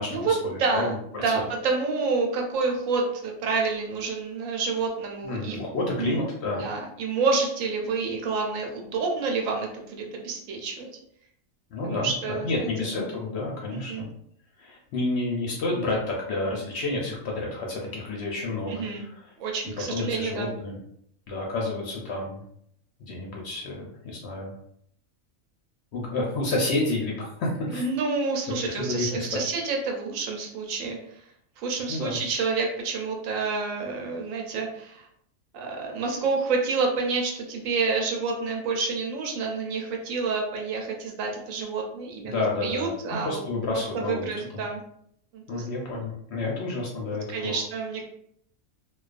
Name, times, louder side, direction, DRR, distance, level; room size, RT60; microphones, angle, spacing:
voice 1, 0.0-1.3 5.2-6.6 11.7-14.1 14.6-19.3 19.9-20.8 21.3-22.4 23.0-24.5 25.9-27.9 28.6-29.2 31.9-32.2 42.3-42.9 43.2-44.6 45.5-47.6, left 2 dB, 65° left, -2 dB, 0.7 m, -30 dB
voice 2, 0.6-0.9 1.2-5.6 6.0-6.1 6.6-10.9 11.8-12.9 13.7-14.0 18.7-19.1 19.4-20.5 27.7-31.0 31.6-35.1 35.5-43.4 43.9-44.8 45.3-45.7 47.3-48.0, right 4 dB, 75° right, 1 dB, 0.9 m, -28 dB
2.3 x 2.3 x 2.4 m, 0.69 s
omnidirectional pair, 1.4 m